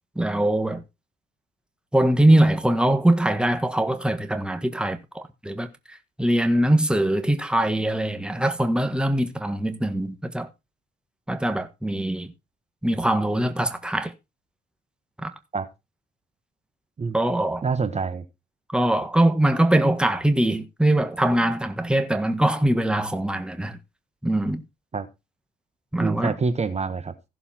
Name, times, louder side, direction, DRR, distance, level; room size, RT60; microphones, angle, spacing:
voice 1, 0.1-0.8 1.9-5.7 6.2-10.5 11.3-12.3 12.8-14.1 15.2-15.3 17.1-17.6 18.7-23.8 24.2-24.6 25.9-26.3, right 1 dB, 5° right, 1.5 m, -22 dB
voice 2, 17.6-18.2 24.9-25.1 26.0-27.1, right 4 dB, 35° right, 1.4 m, -26 dB
15.5 x 6.9 x 4.4 m
cardioid pair, 90°, 20 cm